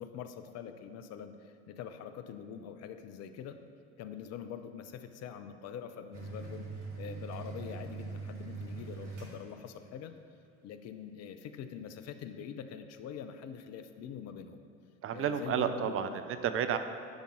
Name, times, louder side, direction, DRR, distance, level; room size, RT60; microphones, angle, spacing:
voice 1, 0.0-3.6 4.0-10.1 10.6-14.6 15.1-16.2, left 8 dB, 45° left, 9 dB, 0.7 m, -44 dB
sound 1, 6.1-10.0, right 4 dB, 85° right, 1.5 m, -42 dB
voice 2, 15.0-16.8, right 8 dB, 40° right, 9 dB, 0.6 m, -31 dB
10.0 x 5.3 x 4.8 m, 2.3 s
hypercardioid pair, 65°, 35 cm